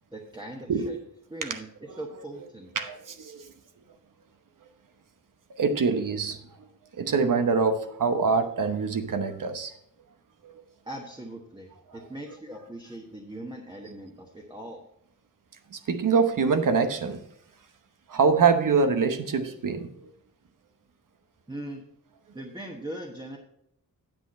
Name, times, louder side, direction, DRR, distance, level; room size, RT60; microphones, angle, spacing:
voice 1, 0.1-1.0 1.3-1.7 2.0-2.7 10.8-14.9 21.5-21.9 22.3-23.4, right 1 dB, 15° right, 1.2 m, -40 dB
voice 2, 2.7-3.5 5.6-6.7 6.9-9.7 10.4-10.5 11.9-12.0 15.7-17.2 18.1-20.1, right 5 dB, 65° right, 1.0 m, -25 dB
9.1 x 8.1 x 4.2 m
wide cardioid pair, 130°, 35 cm